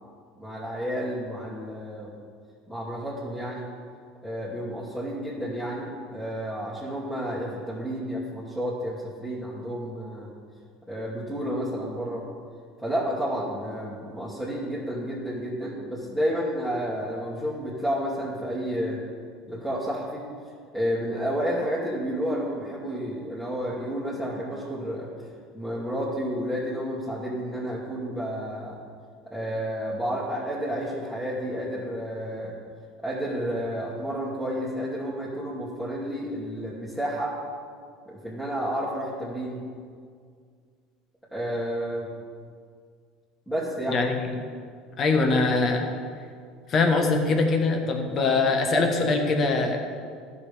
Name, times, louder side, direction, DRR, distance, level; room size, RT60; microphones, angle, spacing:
voice 1, 0.4-2.1 2.7-3.7 4.2-10.3 10.9-12.3 12.8-19.0 19.5-20.3 20.7-25.1 25.5-28.8 29.3-32.6 33.0-37.4 38.1-39.6 41.3-42.1 43.5-44.0, equal, 5° left, -9 dB, 2.6 m, -31 dB
voice 2, 43.9-44.3 45.0-45.9 46.7-49.8, left 3 dB, 45° left, 3 dB, 1.5 m, -22 dB
13.5 x 6.9 x 3.6 m, 2.1 s
hypercardioid pair, 70°, 0 cm